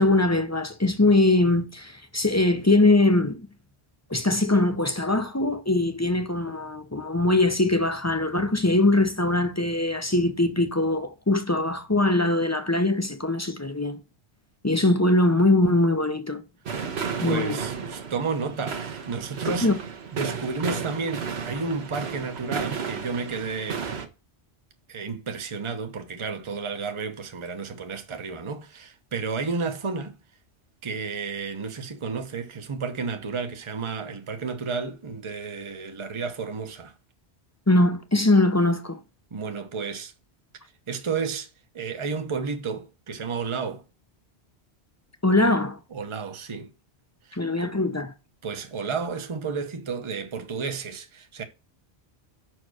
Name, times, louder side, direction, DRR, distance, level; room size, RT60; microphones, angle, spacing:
voice 1, 0.0-3.5 4.1-14.0 14.6-16.4 17.2-17.6 19.6-19.8 37.7-39.0 45.2-45.8 47.4-48.1, left 2 dB, 20° left, 0.6 m, -22 dB
sound 1, 16.7-24.1, right 6 dB, 70° right, 1.3 m, -33 dB
voice 2, 17.2-19.7 20.1-23.9 24.9-30.1 30.8-36.9 39.3-40.1 40.9-41.5 41.7-43.8 45.4-45.6 45.9-46.7 47.3-47.7 48.4-51.4, right 5 dB, 30° right, 0.9 m, -32 dB
6.0 x 4.6 x 6.2 m
omnidirectional pair, 1.1 m